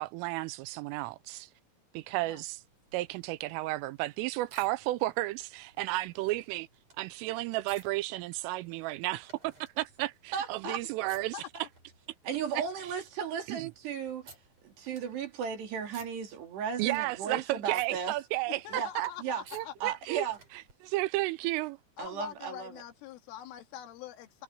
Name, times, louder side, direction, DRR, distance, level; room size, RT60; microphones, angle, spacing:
voice 1, 0.0-1.5 1.9-2.6 2.9-6.7 7.0-11.4 12.5-12.9 13.5-13.7 16.8-19.1 19.5-20.3 20.8-21.8, right 19 dB, 85° right, 3.3 m, -33 dB
sound 1, 2.6-20.7 22.0-22.1, right 4 dB, 35° right, 6.6 m, -59 dB
voice 2, 10.3-10.8 12.2-14.3 14.6-18.1 18.7-18.9 19.2-19.4 19.8-20.4 22.0-22.7, right 7 dB, 60° right, 5.0 m, -35 dB
voice 3, 18.6-19.7 22.0-24.4, left 11 dB, 80° left, 4.6 m, -43 dB
omnidirectional pair, 5.7 m